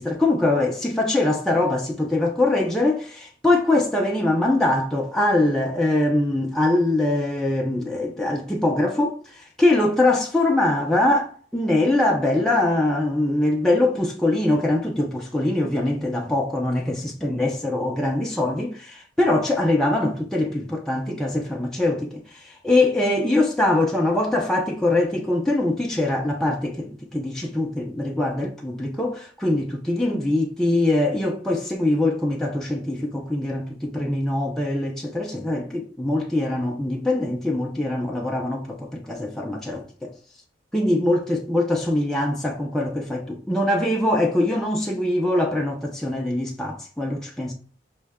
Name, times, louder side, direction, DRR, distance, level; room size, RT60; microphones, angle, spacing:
voice 1, 0.0-40.1 40.7-47.5, left 2 dB, 5° left, 0.4 m, -23 dB
5.3 x 2.1 x 3.5 m
head